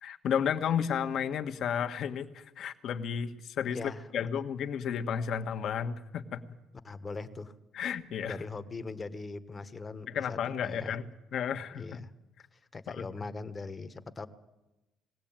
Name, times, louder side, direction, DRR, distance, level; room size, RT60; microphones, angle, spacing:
voice 1, 0.0-3.8 4.1-6.4 7.7-8.4 10.1-11.1 11.3-12.0 13.0-13.1, left 8 dB, 55° left, 6 dB, 1.4 m, -32 dB
voice 2, 3.6-4.3 6.8-7.5 8.3-11.0 11.7-12.1 12.5-14.3, left 3 dB, 20° left, 11 dB, 1.3 m, -41 dB
21.0 x 17.0 x 8.9 m, 1.0 s
cardioid pair, 130°, 0 cm